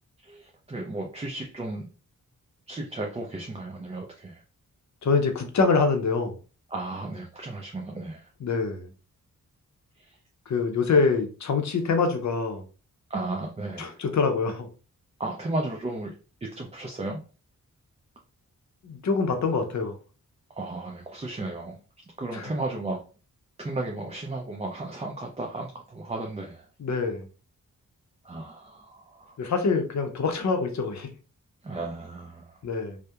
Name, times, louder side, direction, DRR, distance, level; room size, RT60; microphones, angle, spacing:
voice 1, 0.2-1.9 2.7-4.4 6.7-8.3 10.0-10.2 13.1-14.0 15.2-16.1 16.4-17.2 20.6-21.8 22.2-23.0 23.6-26.7 28.2-29.4 31.6-32.6, right 2 dB, 20° right, 0 dB, 0.4 m, -34 dB
voice 2, 5.0-6.4 8.4-8.9 10.5-12.7 13.8-14.7 18.8-19.9 22.3-22.5 26.8-27.3 29.4-31.1 32.6-33.0, left 4 dB, 55° left, 6 dB, 0.6 m, -25 dB
2.7 x 2.1 x 2.3 m, 0.35 s
cardioid pair, 60°, 34 cm